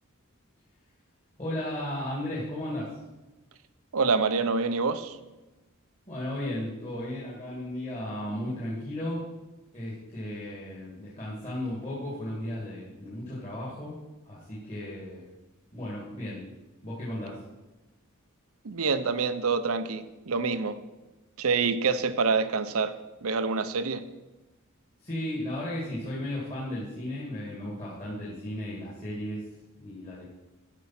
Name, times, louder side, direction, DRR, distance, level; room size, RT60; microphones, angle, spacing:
voice 1, 1.4-2.9 6.1-9.3 9.7-14.0 14.3-15.3 15.7-16.4 16.8-17.4 25.0-29.4 29.8-30.2, left 1 dB, 30° left, -7 dB, 2.4 m, -35 dB
voice 2, 3.9-5.2 18.6-20.8 21.4-24.0, right 4 dB, 75° right, 12 dB, 0.7 m, -27 dB
11.5 x 5.4 x 5.9 m, 1.1 s
head